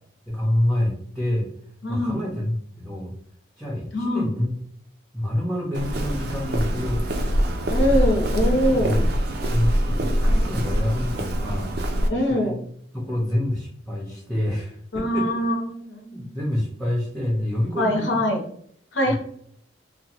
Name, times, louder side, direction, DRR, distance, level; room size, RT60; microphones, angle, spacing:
voice 1, 0.3-1.5 1.9-3.1 3.6-4.6 5.1-7.2 8.6-9.1 9.5-11.7 12.1-12.5 12.9-15.3 16.1-18.2 19.1-19.2, left 1 dB, ahead, -5 dB, 0.5 m, -27 dB
voice 2, 1.8-2.2 3.9-4.3 7.7-9.0 12.1-12.6 14.9-16.3 17.8-18.4 18.9-19.1, equal, 80° left, 1 dB, 0.8 m, -23 dB
Walk footsteps, 5.7-12.1, equal, 60° right, 0.4 m, -24 dB
2.8 x 2.1 x 2.8 m, 0.65 s
head